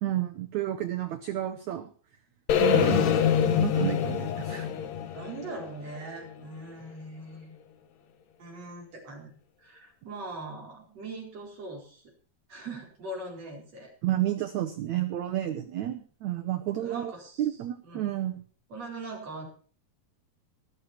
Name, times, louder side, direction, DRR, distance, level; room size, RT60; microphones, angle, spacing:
voice 1, 0.0-1.9 2.6-4.7 14.0-17.1 17.4-18.4, right 13 dB, 90° right, 8 dB, 1.6 m, -31 dB
sound 1, 2.5-6.5, left 8 dB, 65° left, 1.8 m, -25 dB
voice 2, 5.1-7.5 8.4-12.1 12.5-13.9 16.7-18.1 18.7-19.5, right 2 dB, 40° right, -1 dB, 5.3 m, -41 dB
20.0 x 6.7 x 5.9 m, 0.41 s
omnidirectional pair, 4.6 m